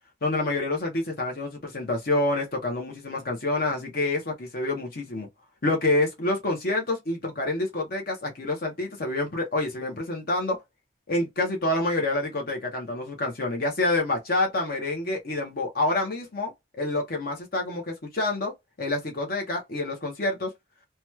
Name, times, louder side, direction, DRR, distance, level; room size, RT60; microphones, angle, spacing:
voice 1, 0.2-5.3 5.6-10.6 11.1-16.5 16.8-18.5 18.8-20.5, left 2 dB, 55° left, 0.8 m, -27 dB
3.0 x 2.2 x 3.0 m
head